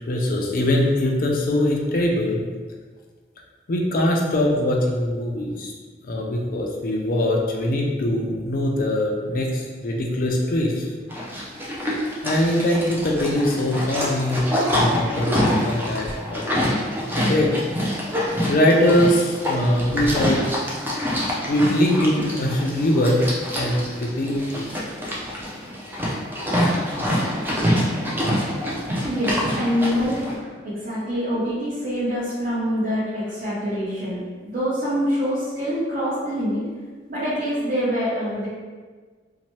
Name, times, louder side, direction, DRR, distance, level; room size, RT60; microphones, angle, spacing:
voice 1, 0.1-2.4 3.7-5.7 6.1-10.9 12.2-14.4 14.7-16.6 17.1-17.6 18.5-20.5 21.5-23.2 23.5-24.5 28.5-28.7, left 1 dB, 50° left, 0 dB, 0.4 m, -22 dB
Livestock farm animals working animals, 11.1-30.4, equal, 10° right, 0.4 m, -26 dB
voice 2, 29.0-36.6 37.1-38.5, equal, 50° right, -11 dB, 0.8 m, -25 dB
2.8 x 2.1 x 3.0 m, 1.4 s
head